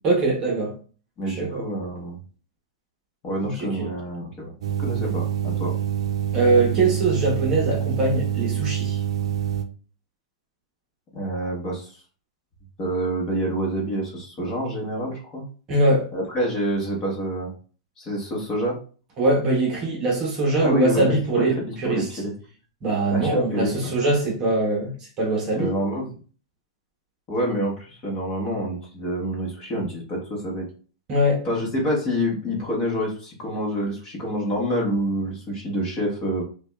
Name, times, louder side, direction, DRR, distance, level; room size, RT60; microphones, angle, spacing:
voice 1, 0.0-0.8 1.3-1.6 3.4-3.9 6.3-9.0 15.7-16.1 19.2-22.1 22.8-24.9 25.2-25.7 31.1-31.4, right 2 dB, 25° right, 0.9 m, -22 dB
voice 2, 1.2-2.2 3.2-4.5 4.8-5.7 11.1-12.0 12.8-15.5 16.1-17.5 18.0-18.8 20.6-22.3 23.1-23.9 25.5-26.1 27.3-30.7 31.4-36.4, equal, 25° left, 1.1 m, -27 dB
sound 1, 4.6-9.6, right 9 dB, 70° right, 0.5 m, -26 dB
4.9 x 2.2 x 2.3 m
supercardioid pair, 165°, 3 cm